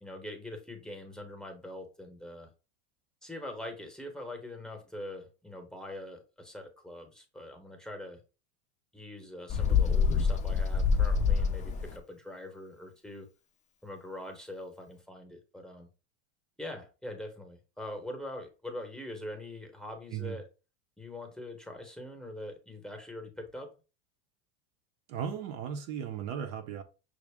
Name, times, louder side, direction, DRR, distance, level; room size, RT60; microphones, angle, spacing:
voice 1, 0.0-2.5 3.2-8.2 8.9-13.3 13.8-15.9 16.6-20.4 21.0-23.7, left 1 dB, ahead, 0.8 m, -43 dB
Bird, 9.5-12.0, left 5 dB, 20° left, 0.4 m, -26 dB
voice 2, 25.1-26.8, right 8 dB, 50° right, 0.6 m, -36 dB
6.1 x 2.1 x 3.4 m
supercardioid pair, 135°, 38 cm